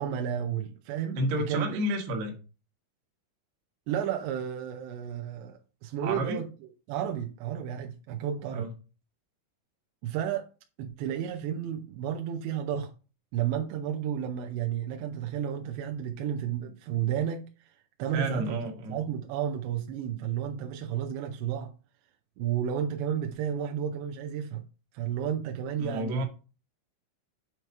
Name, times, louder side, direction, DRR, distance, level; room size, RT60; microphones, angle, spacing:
voice 1, 0.0-1.2 1.5-1.8 3.9-6.4 6.9-8.7 10.0-10.5 10.8-12.9 13.3-17.4 18.0-18.6 18.9-21.7 22.4-24.6 24.9-26.3, right 9 dB, 85° right, 2.5 m, -32 dB
voice 2, 1.2-2.4 6.0-6.4 8.5-8.7 18.1-19.0 25.8-26.3, right 1 dB, 70° right, 2.7 m, -30 dB
8.0 x 3.1 x 4.5 m
omnidirectional pair, 5.8 m